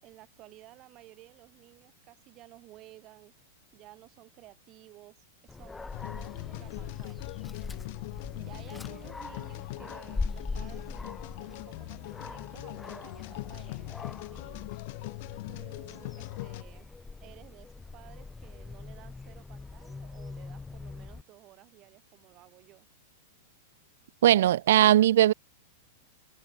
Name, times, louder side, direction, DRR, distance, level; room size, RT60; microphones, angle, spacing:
voice 1, 0.0-3.3 3.7-7.3 8.3-14.7 15.5-22.9, right 17 dB, 40° right, 5.2 m, -54 dB
Dog, 5.5-21.2, left 3 dB, 10° left, 2.4 m, -42 dB
sound 1, 5.9-16.6, left 22 dB, 55° left, 1.0 m, -41 dB
voice 2, 24.2-25.3, right 12 dB, 65° right, 0.3 m, -19 dB
figure-of-eight pair, 100°, 0 cm